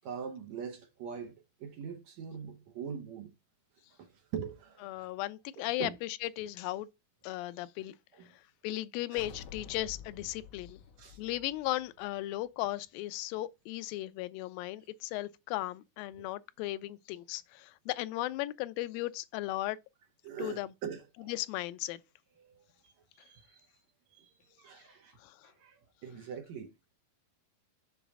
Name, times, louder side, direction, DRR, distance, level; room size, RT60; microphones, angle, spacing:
voice 1, 0.0-3.3 4.0-5.1 5.6-6.0 8.1-8.3 9.1-9.2 11.0-11.2 16.2-16.3 20.2-21.3 22.4-23.7 24.1-26.7, right 7 dB, 65° right, 1.9 m, -43 dB
voice 2, 4.8-6.9 7.2-7.9 8.6-10.8 11.2-19.8 20.4-20.7 21.3-22.0 25.2-25.5, left 16 dB, 85° left, 2.3 m, -36 dB
sound 1, 9.2-12.6, left 7 dB, 65° left, 1.8 m, -50 dB
7.2 x 4.0 x 5.9 m
omnidirectional pair, 4.0 m